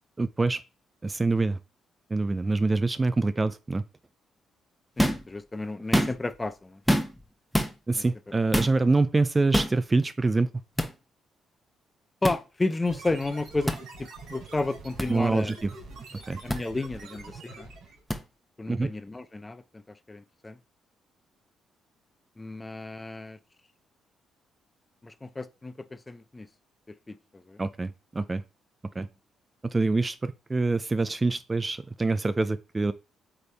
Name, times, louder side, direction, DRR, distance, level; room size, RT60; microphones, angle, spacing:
voice 1, 0.2-0.6 1.0-1.6 2.1-3.8 7.9-10.5 15.1-15.7 16.1-16.4 18.7-18.9 27.6-28.4 29.0-29.1 29.6-32.9, right 3 dB, 20° right, 0.4 m, -25 dB
voice 2, 5.0-6.8 7.9-8.0 12.2-13.7 14.0-15.5 16.4-17.7 18.6-19.8 20.1-20.6 22.4-23.4 25.0-26.5 27.1-27.6, left 2 dB, 20° left, 0.6 m, -32 dB
sound 1, 5.0-5.3 5.8-6.4 6.9-7.2 7.5-7.7 8.5-8.8 9.5-9.8 10.8-10.9 12.2-12.4 13.7-13.8 15.0-15.1 16.5-16.6 18.1-18.2, equal, ahead, 1.0 m, -25 dB
sound 2, 12.8-18.0, right 3 dB, 80° right, 3.2 m, -45 dB
8.3 x 3.4 x 3.4 m
cardioid pair, 90°, 0 cm